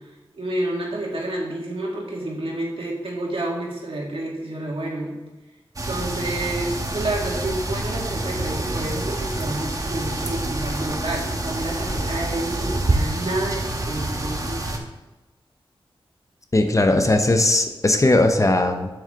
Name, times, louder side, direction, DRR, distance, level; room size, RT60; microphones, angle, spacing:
voice 1, 0.3-5.1 5.8-14.8, right 1 dB, 70° right, -3 dB, 2.2 m, -29 dB
sound 1, 5.8-14.8, right 2 dB, 35° right, 1.1 m, -27 dB
voice 2, 16.5-18.9, left 2 dB, 35° left, 6 dB, 0.8 m, -18 dB
6.9 x 6.7 x 3.8 m, 1.1 s
wide cardioid pair, 70°, 10 cm